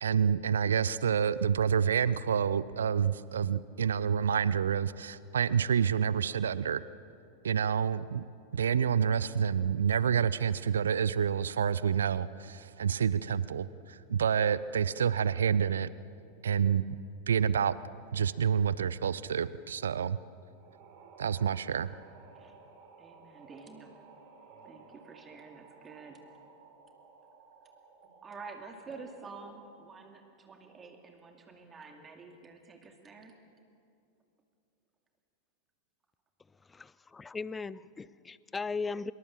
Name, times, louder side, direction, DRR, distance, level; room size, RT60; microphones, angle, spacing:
voice 1, 0.0-6.8 7.4-8.2 8.5-15.9 16.4-16.8 17.3-17.8 18.1-20.2 21.2-21.9, right 7 dB, 65° right, 18 dB, 0.5 m, -28 dB
sound 1, 20.5-30.2, right 4 dB, 45° right, 5.0 m, -56 dB
voice 2, 23.0-24.0 24.6-26.2 28.2-33.3, right 4 dB, 20° right, 4 dB, 2.4 m, -49 dB
voice 3, 36.7-39.1, left 4 dB, 15° left, 20 dB, 0.5 m, -37 dB
25.5 x 22.5 x 7.3 m, 2.5 s
figure-of-eight pair, 90°, 0 cm